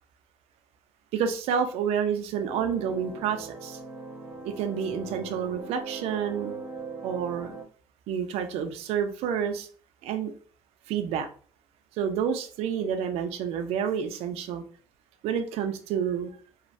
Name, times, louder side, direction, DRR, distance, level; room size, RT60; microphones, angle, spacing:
voice 1, 1.1-3.8 4.4-6.5 7.0-7.5 8.1-9.7 10.0-10.3 10.9-11.3 12.0-14.6 15.2-16.3, right 7 dB, 70° right, 0.5 m, -29 dB
sound 1, 2.3-7.6, right 4 dB, 20° right, 0.7 m, -40 dB
3.1 x 2.1 x 2.6 m
cardioid pair, 120°, 11 cm